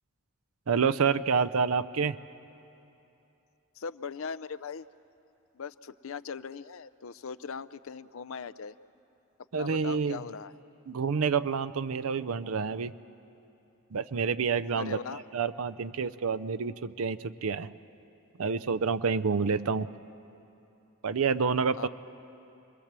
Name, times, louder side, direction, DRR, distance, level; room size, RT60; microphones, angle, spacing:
voice 1, 0.7-2.2 9.5-10.2 10.9-12.9 13.9-17.7 18.4-19.9 21.0-21.9, right 5 dB, 70° right, 13 dB, 0.5 m, -28 dB
voice 2, 3.8-4.9 5.5-8.8 9.5-10.5 14.7-15.2 21.8-21.9, left 5 dB, 65° left, 13 dB, 0.5 m, -39 dB
28.0 x 21.0 x 7.5 m, 2.9 s
head